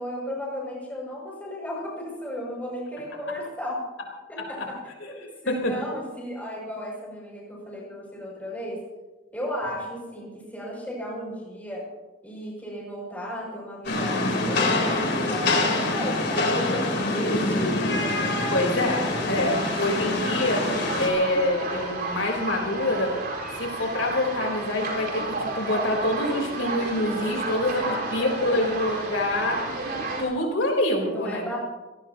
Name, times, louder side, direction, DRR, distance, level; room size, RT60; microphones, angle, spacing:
voice 1, 0.0-3.8 4.3-4.8 5.1-8.8 9.3-11.9 12.2-18.3 27.3-28.8 31.1-31.6, equal, 10° left, -3 dB, 6.8 m, -34 dB
voice 2, 4.4-4.7 5.0-5.1 5.5-5.7 18.5-23.2 23.6-29.7 30.2-31.4, left 1 dB, 80° left, 1 dB, 4.0 m, -26 dB
Rain, 13.9-21.1, left 2 dB, 60° left, 3.7 m, -25 dB
sound 1, 18.3-30.2, right 2 dB, 55° right, 4.6 m, -32 dB
26.0 x 18.0 x 3.0 m, 1.2 s
head